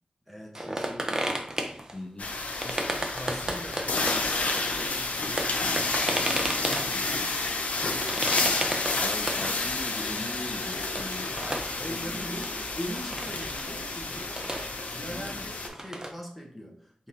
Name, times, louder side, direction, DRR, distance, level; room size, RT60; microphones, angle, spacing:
voice 1, 0.3-1.3 2.6-7.2 11.8-14.5 14.9-17.1, equal, 5° right, 0 dB, 1.1 m, -42 dB
sound 1, 0.5-2.0 2.6-4.3 4.8-4.9 5.1-7.2 8.0-9.5 9.7-9.8 10.2-10.3 10.8-11.7 12.4-12.5 13.0-13.5 13.9-15.1 15.4-16.1, right 1 dB, 25° right, 0.7 m, -33 dB
voice 2, 1.9-2.3 8.6-11.3 11.9-12.5 15.1-15.5, left 2 dB, 30° left, 6 dB, 0.5 m, -40 dB
sound 2, 2.2-15.7, left 3 dB, 75° left, 0.7 m, -30 dB
4.7 x 3.7 x 2.8 m, 0.63 s
wide cardioid pair, 75°, 3 cm